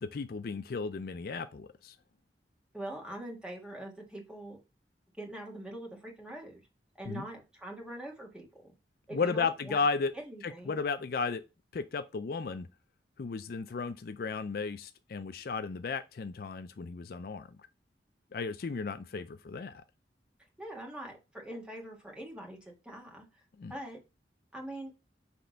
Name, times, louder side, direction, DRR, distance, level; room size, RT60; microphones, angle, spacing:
voice 1, 0.0-1.9 7.0-7.2 9.1-10.1 10.4-11.4 11.7-12.7 13.2-17.5 18.3-19.8 23.6-23.7, left 4 dB, 55° left, 0.4 m, -34 dB
voice 2, 2.7-4.6 5.2-6.6 6.9-8.7 9.1-9.8 10.1-10.8 20.6-23.4 23.7-24.0 24.5-24.9, right 1 dB, 5° right, 1.6 m, -43 dB
6.0 x 3.4 x 5.1 m
head